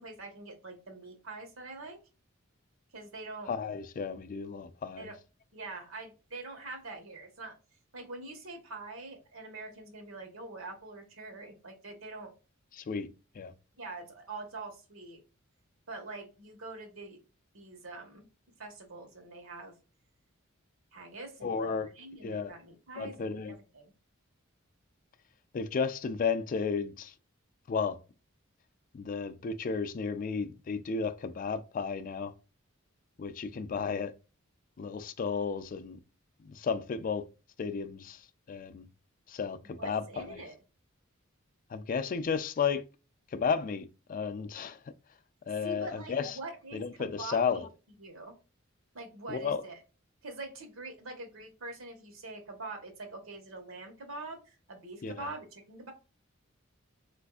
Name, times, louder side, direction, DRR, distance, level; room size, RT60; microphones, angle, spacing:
voice 1, 0.0-2.0 2.9-3.5 5.0-5.2 5.5-7.6 7.9-12.3 13.7-15.2 15.9-17.2 17.5-18.3 18.6-19.7 20.9-23.9 39.6-40.6 45.6-47.7 48.0-48.4 48.9-49.8 50.2-55.9, right 2 dB, 80° right, 1.1 m, -44 dB
voice 2, 3.5-5.1 12.7-13.1 13.4-13.5 21.4-21.9 22.2-22.5 23.0-23.5 25.5-27.1 27.7-28.0 28.9-32.3 33.2-34.1 34.8-36.0 36.4-37.3 37.6-38.2 38.5-38.9 39.3-40.4 41.7-42.8 43.3-44.8 45.5-46.4 46.7-47.7 49.3-49.6 55.0-55.3, left 5 dB, 40° left, 0.3 m, -33 dB
4.0 x 2.5 x 2.3 m
head